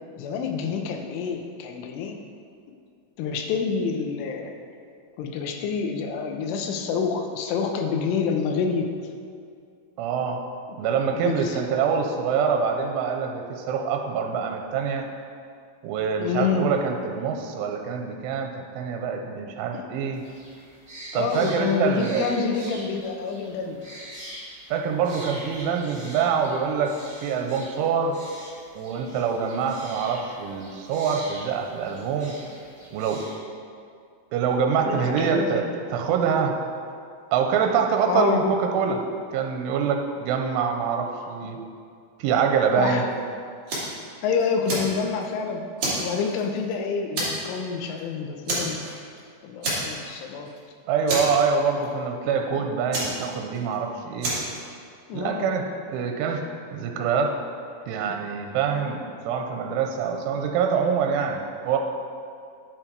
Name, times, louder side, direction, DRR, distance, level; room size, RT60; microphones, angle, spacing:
voice 1, 0.2-2.2 3.2-4.6 5.2-8.9 11.1-11.6 16.2-16.7 19.7-19.8 21.1-23.8 34.8-35.7 38.1-38.4 42.8-43.1 44.2-45.6 46.0-48.8 49.4-50.5 55.1-55.5, left 5 dB, 90° left, 4 dB, 3.3 m, -27 dB
voice 2, 10.0-10.4 10.8-15.1 15.8-20.2 21.1-22.3 24.7-28.2 28.8-32.3 32.9-33.2 34.3-36.6 37.3-39.0 39.3-41.6 42.2-43.1 50.9-54.3 55.1-56.4 56.7-57.4 57.9-61.8, right 6 dB, 90° right, 3 dB, 3.2 m, -25 dB
sound 1, 20.1-33.4, right 1 dB, 20° right, 1.0 m, -43 dB
Fire, 43.7-44.0 44.4-45.3 45.8-46.7 47.2-47.6 47.9-48.0 48.5-49.2 49.6-50.2 50.5-50.6 51.1-51.9 52.9-53.7 54.2-54.6, right 2 dB, 35° right, 3.0 m, -28 dB
10.5 x 7.9 x 4.6 m, 2.3 s
omnidirectional pair, 5.4 m